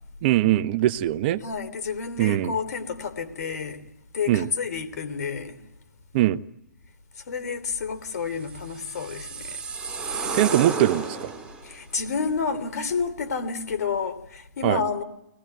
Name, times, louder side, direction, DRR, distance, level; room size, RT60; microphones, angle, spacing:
voice 1, 0.2-1.4 2.2-2.6 4.3-4.5 6.1-6.4 10.3-11.3 14.6-14.8, right 14 dB, 35° right, 0.9 m, -22 dB
voice 2, 1.4-3.8 4.1-5.6 7.3-9.6 11.6-15.0, left 5 dB, 60° left, 3.2 m, -30 dB
sound 1, 8.5-11.7, right 4 dB, 10° right, 4.2 m, -32 dB
24.5 x 20.0 x 9.2 m
hypercardioid pair, 140°, 10 cm